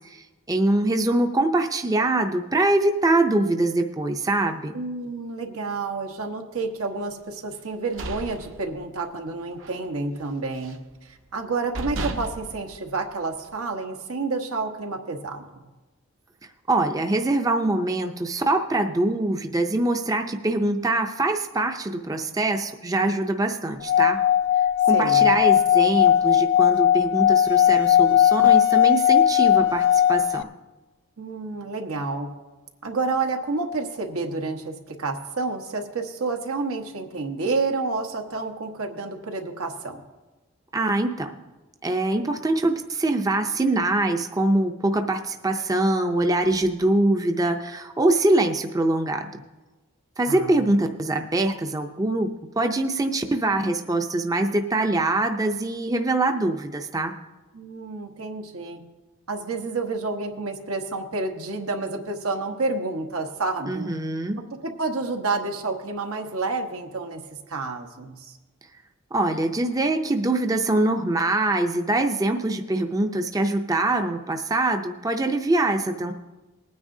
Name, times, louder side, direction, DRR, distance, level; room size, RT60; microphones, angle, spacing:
voice 1, 0.0-4.8 16.7-24.2 24.9-30.5 40.7-41.3 41.8-49.4 50.2-57.2 63.7-64.4 69.1-76.1, right 2 dB, 15° right, 5 dB, 0.5 m, -23 dB
voice 2, 4.7-10.8 11.0-15.4 24.9-25.3 31.2-32.3 32.8-40.0 50.3-50.7 57.5-58.8 59.3-63.9 64.6-67.2 67.5-68.3, right 3 dB, 90° right, 3 dB, 1.2 m, -29 dB
sound 1, 7.6-9.2 9.5-9.8 10.2-10.9 11.4-11.5 11.7-13.6, right 2 dB, 65° right, 0.9 m, -35 dB
Singing / Glass, 23.8-30.4, left 10 dB, 55° left, 0.3 m, -18 dB
20.0 x 9.5 x 2.7 m, 1.2 s
head